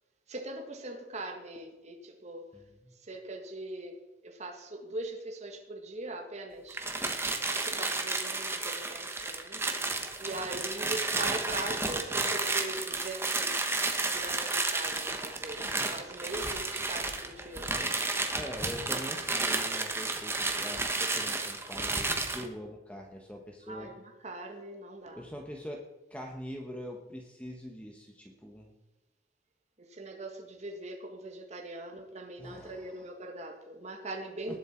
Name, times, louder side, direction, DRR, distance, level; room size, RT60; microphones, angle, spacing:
voice 1, 0.3-2.5 3.0-4.0 4.2-6.8 7.5-9.6 10.2-13.8 14.1-17.7 23.7-25.2 29.8-34.6, right 2 dB, 40° right, 2 dB, 1.7 m, -41 dB
sound 1, 6.7-22.5, right 3 dB, 15° right, 1.3 m, -32 dB
voice 2, 18.3-23.9 25.1-28.7 32.4-33.0 34.5-34.6, equal, 10° left, 1 dB, 1.1 m, -43 dB
19.5 x 7.6 x 4.4 m, 1.1 s
head